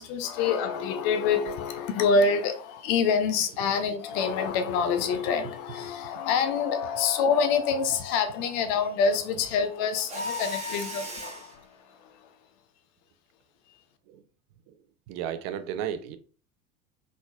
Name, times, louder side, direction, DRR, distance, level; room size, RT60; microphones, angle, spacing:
voice 1, 0.0-12.3 13.7-13.8, left 5 dB, 40° left, 0.6 m, -26 dB
Mechanisms, 10.1-11.5, left 2 dB, 15° right, 1.5 m, -35 dB
voice 2, 15.1-16.2, right 9 dB, 45° right, 0.5 m, -33 dB
3.9 x 3.7 x 2.3 m
figure-of-eight pair, 80°, 44 cm